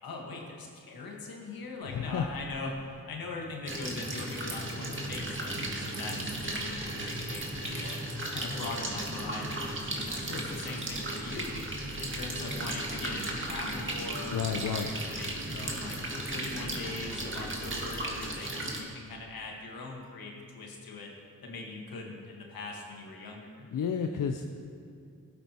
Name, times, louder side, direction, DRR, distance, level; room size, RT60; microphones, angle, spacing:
voice 1, 0.0-8.0 8.3-11.6 12.0-16.0 16.3-21.1 21.4-23.7, left 3 dB, 90° left, 0 dB, 1.6 m, -41 dB
voice 2, 1.8-2.3 14.3-14.9 23.7-24.5, left 7 dB, 65° left, 5 dB, 0.6 m, -31 dB
sound 1, 2.1-18.2, right 1 dB, 20° right, 1.7 m, -50 dB
sound 2, 3.7-18.8, right 1 dB, 35° right, 1.9 m, -35 dB
16.5 x 8.3 x 3.0 m, 2.5 s
cardioid pair, 55°, 35 cm